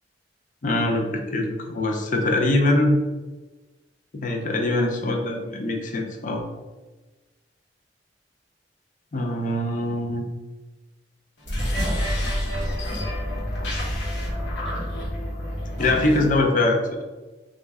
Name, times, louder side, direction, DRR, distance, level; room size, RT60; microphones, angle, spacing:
voice 1, 0.6-3.0 4.1-6.5 9.1-10.3 15.8-17.0, left 2 dB, 45° left, 2 dB, 0.5 m, -23 dB
sound 1, 11.4-16.4, equal, 85° left, 1.0 m, -28 dB
3.1 x 2.5 x 3.4 m, 1.2 s
head